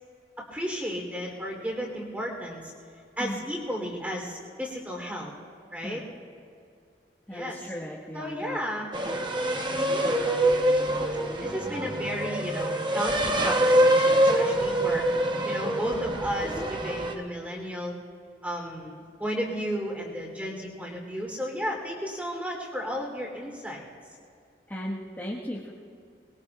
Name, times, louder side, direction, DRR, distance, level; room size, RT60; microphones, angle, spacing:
voice 1, 0.5-2.7 3.2-5.3 5.7-6.0 7.3-7.7 8.1-8.9 9.7-10.0 10.7-11.1 11.4-15.0 15.4-17.9 18.4-23.9, equal, 10° right, -1 dB, 3.2 m, -33 dB
voice 2, 7.3-8.6 10.9-11.0 24.7-25.7, equal, 10° left, -8 dB, 1.4 m, -36 dB
sound 1, 8.9-17.2, right 1 dB, 25° right, 0.9 m, -25 dB
23.5 x 21.5 x 2.4 m, 2.3 s
head